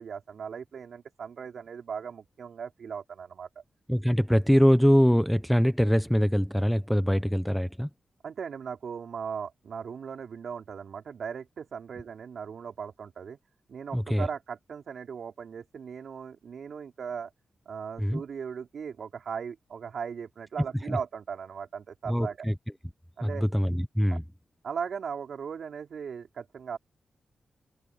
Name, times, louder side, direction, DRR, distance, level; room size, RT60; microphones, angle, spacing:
voice 1, 0.0-3.6 8.2-13.4 13.7-17.3 17.7-22.5 23.2-23.5 24.1-24.2 24.6-26.8, right 6 dB, 70° right, 3.9 m, -38 dB
voice 2, 3.9-7.9 13.9-14.3 18.0-18.2 20.9-21.0 22.1-22.5 23.2-24.2, equal, ahead, 0.8 m, -23 dB
cardioid pair, 95°, 0 cm